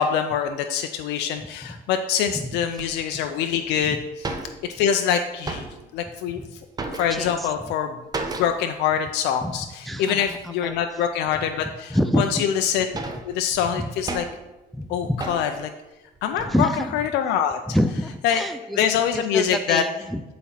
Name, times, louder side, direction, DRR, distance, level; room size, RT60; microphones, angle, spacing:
voice 1, 0.0-4.0 4.7-5.7 5.9-6.6 7.0-8.0 8.4-13.0 13.3-14.2 14.9-15.7 16.2-17.6 18.2-18.4 18.8-19.8, left 8 dB, 85° left, 6 dB, 0.5 m, -24 dB
voice 2, 2.3-2.8 3.8-4.0 6.4-6.5 7.1-7.7 9.4-9.6 9.8-10.8 11.9-12.5 13.7-13.9 14.7-15.2 16.4-17.0 17.7-18.8 19.1-20.2, equal, ahead, 9 dB, 0.4 m, -27 dB
sound 1, 2.8-2.9 3.6-3.7 3.8-3.9 4.1-5.0 5.3-6.0 6.4-7.5 8.1-8.7 9.0-9.1 9.5-9.7 10.3-10.8 11.3-11.4 12.1-12.2 12.6-14.6 15.2-15.7 16.1-16.6, right 3 dB, 25° right, 0.9 m, -34 dB
8.3 x 4.2 x 5.7 m, 1.0 s
cardioid pair, 110°, 17 cm